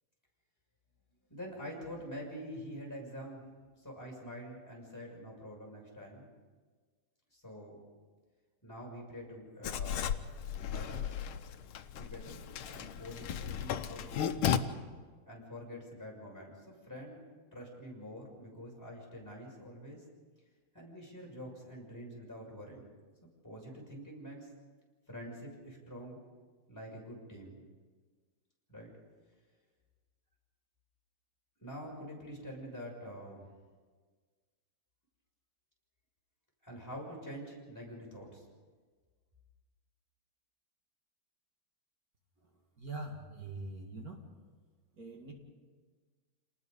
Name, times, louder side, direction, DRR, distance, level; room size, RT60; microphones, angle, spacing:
voice 1, 1.3-3.5 3.7-6.3 7.3-7.8 8.6-10.1 10.6-11.1 12.0-12.4 12.7-14.8 15.3-17.2 17.5-20.0 20.7-22.9 23.4-24.5 25.1-26.2 26.7-27.6 28.7-28.9 31.6-33.5 36.6-38.5, equal, 10° left, -3 dB, 6.5 m, -46 dB
Writing, 9.6-14.6, left 9 dB, 85° left, 1.7 m, -35 dB
voice 2, 42.8-44.3 45.0-45.3, right 2 dB, 45° right, 2 dB, 2.4 m, -43 dB
28.5 x 19.5 x 5.4 m, 1.5 s
omnidirectional pair, 2.3 m